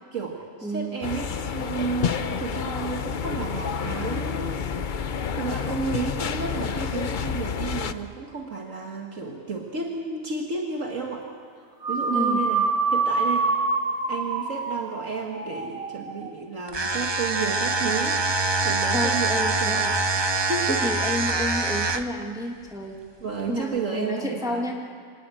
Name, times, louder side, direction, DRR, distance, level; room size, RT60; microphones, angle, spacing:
voice 1, 0.0-4.6 5.4-11.3 11.6-13.5 14.1-18.2 18.6-20.0 20.5-20.8 23.2-24.7, right 5 dB, 60° right, 1 dB, 2.0 m, -32 dB
voice 2, 0.6-1.0 12.1-12.4 18.9-19.9 20.7-22.9 23.5-24.7, left 1 dB, ahead, 1 dB, 2.0 m, -30 dB
sound 1, 1.0-7.9, left 6 dB, 45° left, 0.7 m, -29 dB
sound 2, 11.8-16.3, right 3 dB, 80° right, 2.1 m, -26 dB
sound 3, 16.7-22.2, right 3 dB, 25° right, 0.7 m, -24 dB
26.0 x 18.5 x 9.0 m, 2.1 s
omnidirectional pair, 1.5 m